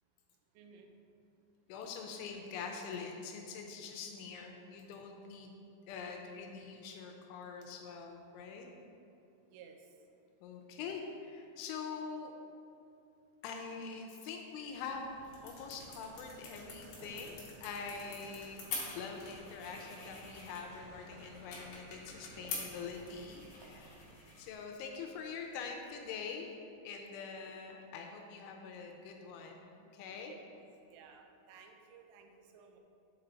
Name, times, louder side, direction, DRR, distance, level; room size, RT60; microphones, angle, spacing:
voice 1, 0.6-1.0 9.5-9.8 30.2-30.5 30.9-32.8, right 6 dB, 90° right, 4 dB, 3.2 m, -56 dB
voice 2, 1.7-5.5 5.9-8.7 10.4-12.3 13.4-15.1 15.4-24.0 24.4-26.5 26.8-30.3, left 5 dB, 85° left, 2 dB, 2.9 m, -44 dB
sound 1, 14.7-26.2, left 3 dB, 65° left, 1.9 m, -48 dB
sound 2, 14.7-24.7, right 1 dB, 70° right, 2.9 m, -57 dB
8.5 x 5.5 x 4.0 m, 2.6 s
omnidirectional pair, 5.7 m